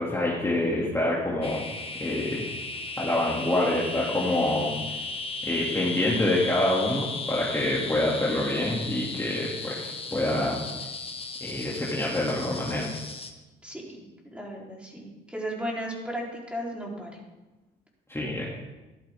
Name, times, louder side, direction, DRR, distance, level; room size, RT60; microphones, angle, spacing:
voice 1, 0.0-1.6 2.0-2.4 3.0-4.8 5.4-10.6 11.4-12.9 18.1-18.5, left 1 dB, 15° left, -5 dB, 2.6 m, -26 dB
sound 1, 1.4-13.3, left 3 dB, 30° left, 1.5 m, -36 dB
voice 2, 13.6-17.2, equal, 5° right, -3 dB, 3.8 m, -35 dB
14.0 x 11.5 x 3.7 m, 1.1 s
cardioid pair, 90°, 20 cm